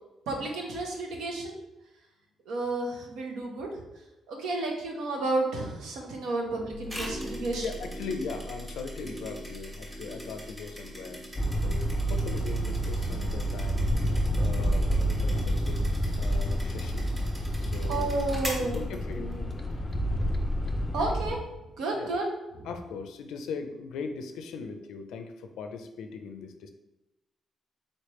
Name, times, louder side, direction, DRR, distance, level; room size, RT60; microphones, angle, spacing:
voice 1, 0.3-1.6 2.5-3.7 4.3-7.6 17.9-18.9 19.2-19.4 20.9-21.4 21.8-22.3, right 2 dB, 90° right, 1 dB, 0.9 m, -31 dB
sound 1, 6.7-12.2, equal, 65° right, 1.0 m, -41 dB
sound 2, 6.9-19.5, equal, 15° right, 1.2 m, -44 dB
voice 2, 7.6-11.2 11.6-13.8 14.4-15.8 16.2-17.1 17.6-18.1 18.7-19.3 21.9-22.1 22.6-26.7, left 5 dB, 90° left, 6 dB, 0.4 m, -39 dB
sound 3, 11.4-21.4, equal, 20° left, 0.4 m, -28 dB
4.1 x 3.3 x 3.1 m, 0.99 s
cardioid pair, 115°, 0 cm